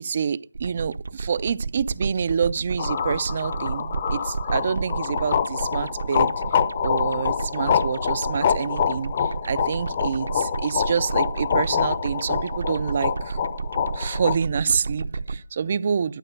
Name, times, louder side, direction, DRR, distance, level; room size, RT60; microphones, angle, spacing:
voice 1, 0.0-6.3 6.8-13.4 13.9-16.2, right 6 dB, 35° right, 0.4 m, -27 dB
sound 1, 0.5-15.4, right 4 dB, 60° right, 0.7 m, -32 dB
sound 2, 2.8-14.4, left 8 dB, 30° left, 0.7 m, -26 dB
11.5 x 4.8 x 8.0 m
figure-of-eight pair, 165°, 0 cm